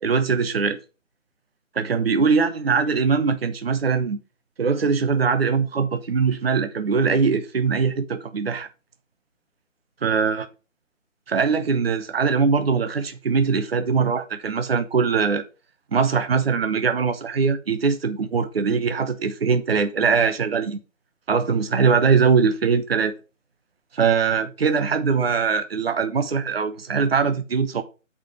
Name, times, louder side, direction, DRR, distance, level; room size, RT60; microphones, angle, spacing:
voice 1, 0.0-0.8 1.8-4.2 4.6-8.7 10.0-10.4 11.3-15.4 15.9-20.8 21.3-23.1 23.9-27.8, right 5 dB, 50° right, 1.0 m, -21 dB
8.2 x 5.0 x 5.0 m
figure-of-eight pair, 165°, 40 cm